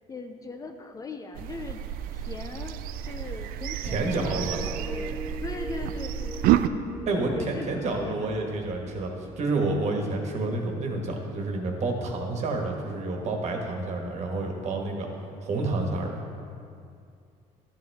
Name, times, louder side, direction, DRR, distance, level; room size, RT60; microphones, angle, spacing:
voice 1, 0.1-1.8 2.1-6.3 7.3-8.5, left 3 dB, 25° left, 5 dB, 0.5 m, -39 dB
sound 1, 1.3-6.7, right 12 dB, 75° right, 0.4 m, -29 dB
voice 2, 3.8-4.6 7.1-15.1 15.4-16.2, right 2 dB, 45° right, 2 dB, 1.5 m, -29 dB
sound 2, 4.2-9.5, equal, 5° right, 1.0 m, -41 dB
12.5 x 8.9 x 3.5 m, 2.4 s
cardioid pair, 125°, 15 cm